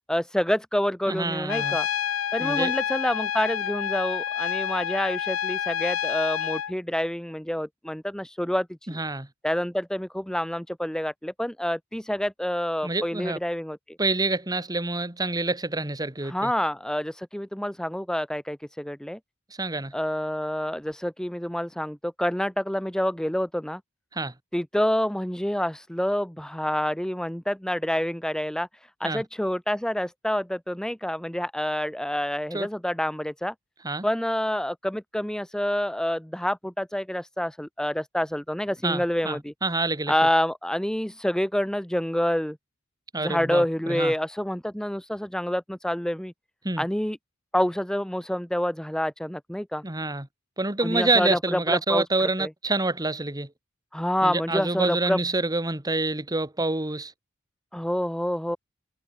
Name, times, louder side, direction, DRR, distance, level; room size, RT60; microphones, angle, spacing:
voice 1, 0.1-1.9 2.3-9.0 9.4-13.8 16.2-19.2 19.9-23.8 24.5-28.7 29.0-33.5 34.0-39.5 40.1-42.6 43.2-46.3 46.8-47.2 47.5-49.8 50.8-52.0 52.4-52.5 53.9-55.2 57.7-58.6, equal, 5° left, 0.8 m, -27 dB
voice 2, 1.1-1.8 2.4-2.7 8.9-9.3 12.8-13.4 14.0-16.5 19.5-19.9 24.1-24.3 29.0-29.2 32.5-32.7 33.8-34.1 38.8-40.1 43.1-44.1 46.6-46.8 49.8-50.3 50.6-53.5 54.2-57.1, right 2 dB, 20° right, 2.0 m, -27 dB
Trumpet, 1.5-6.7, left 9 dB, 80° left, 0.5 m, -28 dB
head